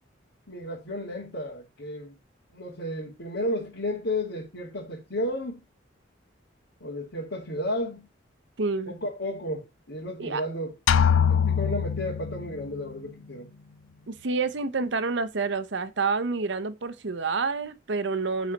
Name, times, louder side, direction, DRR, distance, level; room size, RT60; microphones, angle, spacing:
voice 1, 0.5-2.1 2.5-5.6 6.8-8.1 8.9-10.7 11.3-13.5, left 1 dB, 65° left, 2.3 m, -33 dB
voice 2, 8.6-9.0 10.2-10.4 14.1-18.5, right 4 dB, 65° right, 0.8 m, -28 dB
sound 1, 10.9-12.7, left 7 dB, 85° left, 0.4 m, -23 dB
9.7 x 4.1 x 5.2 m
head